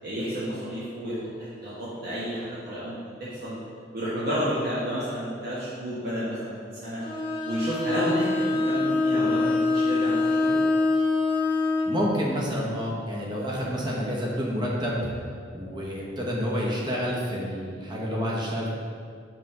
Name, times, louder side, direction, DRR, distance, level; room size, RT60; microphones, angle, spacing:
voice 1, 0.0-3.5 3.9-7.0 7.4-10.6, equal, 55° right, -9 dB, 1.1 m, -31 dB
Bowed string instrument, 7.0-12.0, left 3 dB, 30° left, 0.7 m, -24 dB
voice 2, 11.9-15.1 15.5-18.7, equal, 25° right, -4 dB, 1.0 m, -29 dB
4.9 x 3.8 x 5.4 m, 2.2 s
head